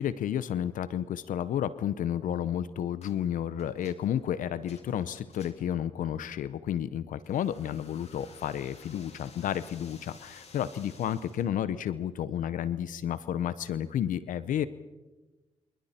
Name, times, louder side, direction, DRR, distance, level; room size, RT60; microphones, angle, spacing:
voice 1, 0.0-14.7, left 10 dB, 80° left, 15 dB, 0.8 m, -31 dB
sound 1, 3.0-3.2 3.6-5.8 7.2-11.5, left 4 dB, 55° left, 3.8 m, -55 dB
29.0 x 27.5 x 4.4 m, 1.2 s
supercardioid pair, 50°, 13 cm